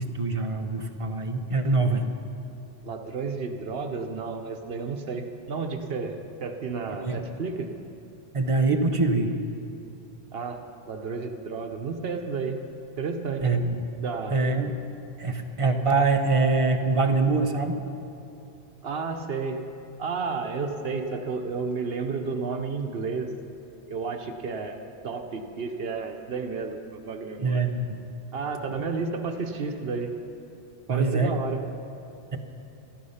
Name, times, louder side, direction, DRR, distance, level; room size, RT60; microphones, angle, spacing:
voice 1, 0.0-2.1 6.9-7.2 8.3-9.3 13.4-13.8 14.3-14.8 15.2-17.8 27.4-28.0 30.9-31.4 32.3-32.4, right 3 dB, 35° right, 5 dB, 0.8 m, -24 dB
voice 2, 2.8-7.7 10.3-10.6 10.9-12.6 13.0-13.5 14.0-14.4 18.8-19.6 20.0-23.3 23.9-27.6 28.3-30.1 30.9-31.6, right 4 dB, 70° right, 5 dB, 1.1 m, -32 dB
13.0 x 12.0 x 5.6 m, 2.8 s
omnidirectional pair, 1.0 m